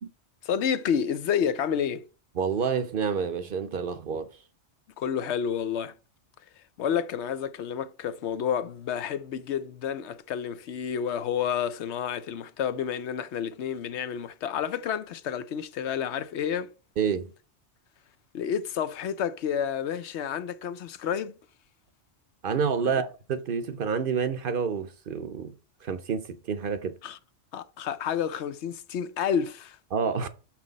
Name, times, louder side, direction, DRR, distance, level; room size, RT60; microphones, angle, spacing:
voice 1, 0.4-2.1 5.0-5.9 6.6-16.7 18.3-21.3 22.8-22.9 27.0-27.2 27.5-29.8, left 8 dB, 75° left, 0.9 m, -30 dB
voice 2, 2.4-4.3 17.0-17.3 22.4-25.5 25.8-27.0 29.9-30.3, right 6 dB, 55° right, 0.8 m, -28 dB
6.2 x 5.9 x 3.9 m
omnidirectional pair, 1.2 m